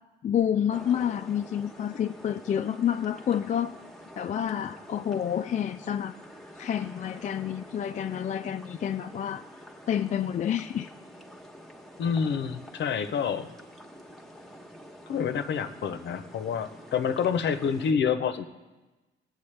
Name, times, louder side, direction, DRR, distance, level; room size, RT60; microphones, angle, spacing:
voice 1, 0.2-3.7 4.2-6.1 6.6-9.4 9.9-10.9, left 9 dB, 40° left, 9 dB, 0.4 m, -29 dB
sound 1, 0.7-17.9, equal, ahead, 1.1 m, -48 dB
voice 2, 12.0-13.5 15.1-18.4, left 7 dB, 65° left, 10 dB, 0.7 m, -28 dB
16.5 x 8.0 x 3.3 m, 1.2 s
cardioid pair, 90°, 20 cm